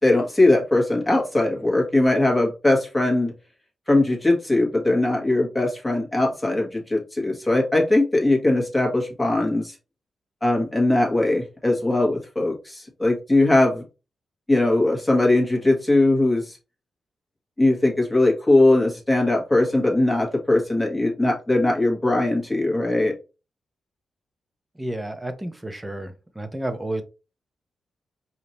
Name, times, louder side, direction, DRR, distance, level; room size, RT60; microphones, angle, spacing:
voice 1, 0.0-3.3 3.9-9.7 10.4-13.8 14.5-16.6 17.6-23.1, left 2 dB, 10° left, 1.5 m, -20 dB
voice 2, 24.7-27.0, right 1 dB, 10° right, 0.8 m, -31 dB
5.0 x 2.7 x 3.0 m
cardioid pair, 105°, 0 cm